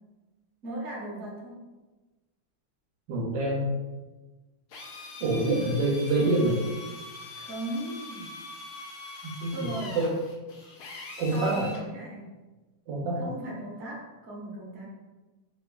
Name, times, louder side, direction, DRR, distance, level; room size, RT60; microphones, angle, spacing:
voice 1, 0.6-1.6 5.3-5.7 7.4-8.3 9.5-10.0 11.3-12.3 13.1-14.8, right 1 dB, 50° right, -5 dB, 0.9 m, -37 dB
voice 2, 3.1-3.7 5.2-6.6 9.4-9.5 9.9-10.1 11.2-11.7 12.9-13.2, right 2 dB, 70° right, -4 dB, 1.2 m, -26 dB
Drill, 4.7-11.9, left 2 dB, 75° left, 0.9 m, -43 dB
3.3 x 3.0 x 2.2 m, 1.2 s
omnidirectional pair, 2.2 m